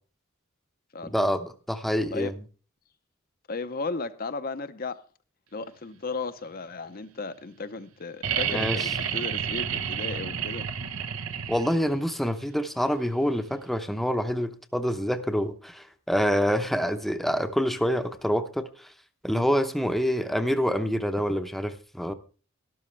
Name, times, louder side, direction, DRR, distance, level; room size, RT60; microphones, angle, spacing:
voice 1, 1.1-2.3 8.5-8.9 11.5-18.9 19.2-22.1, equal, ahead, 0.8 m, -26 dB
voice 2, 3.5-5.0 5.5-10.7, left 3 dB, 45° left, 0.7 m, -35 dB
sound 1, 8.2-12.0 13.7-13.8, right 8 dB, 80° right, 1.0 m, -30 dB
12.5 x 12.5 x 3.3 m
head